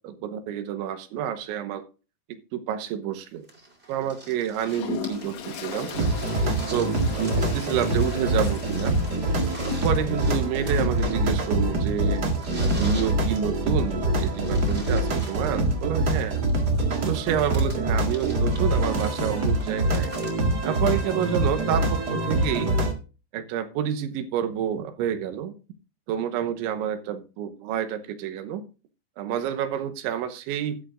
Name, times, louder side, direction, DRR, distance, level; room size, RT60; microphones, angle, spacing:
voice 1, 0.0-1.8 2.5-3.5 3.9-5.9 6.7-9.0 9.7-12.2 12.6-16.4 17.1-20.1 20.6-22.7 23.3-25.6 26.1-28.6 29.2-30.8, right 9 dB, 90° right, 9 dB, 3.5 m, -29 dB
sound 1, 3.5-21.6 22.6-22.7, right 2 dB, 15° right, 3.0 m, -42 dB
Toilet flush, 4.6-10.4, left 8 dB, 80° left, 3.7 m, -38 dB
sound 2, 5.9-22.9, right 1 dB, 70° right, 0.9 m, -25 dB
13.5 x 13.0 x 2.5 m, 0.33 s
omnidirectional pair, 5.3 m